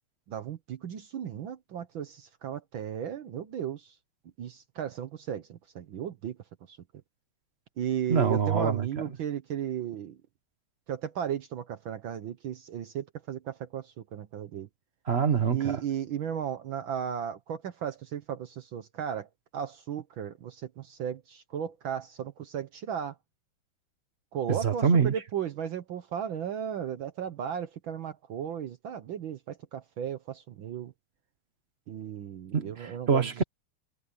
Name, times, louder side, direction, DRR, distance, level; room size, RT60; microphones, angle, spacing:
voice 1, 0.3-4.0 4.4-6.4 6.7-6.8 7.8-10.2 10.9-14.7 15.5-23.2 24.3-30.9 31.9-33.3, right 9 dB, 65° right, 1.7 m, -35 dB
voice 2, 8.1-9.1 15.1-15.8 24.5-25.1 32.5-33.4, right 6 dB, 35° right, 1.3 m, -25 dB
omnidirectional pair, 2.4 m